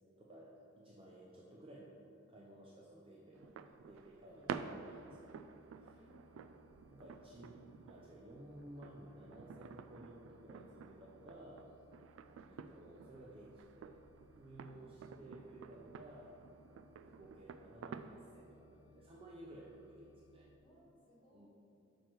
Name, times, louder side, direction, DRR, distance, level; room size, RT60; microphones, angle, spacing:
voice 1, 0.2-1.9 2.3-6.0 6.9-11.7 12.5-13.9 14.4-16.3 16.9-20.5 21.3-21.5, right 1 dB, 30° right, -4 dB, 0.6 m, -56 dB
sound 1, 3.3-18.4, right 6 dB, 90° right, 0.3 m, -51 dB
sound 2, 4.4-20.6, left 1 dB, 85° left, 0.5 m, -67 dB
voice 2, 6.0-6.5 12.2-12.4 14.6-15.0 17.1-17.3 20.6-21.5, equal, 25° left, -4 dB, 1.4 m, -67 dB
6.4 x 4.6 x 4.5 m, 2.7 s
head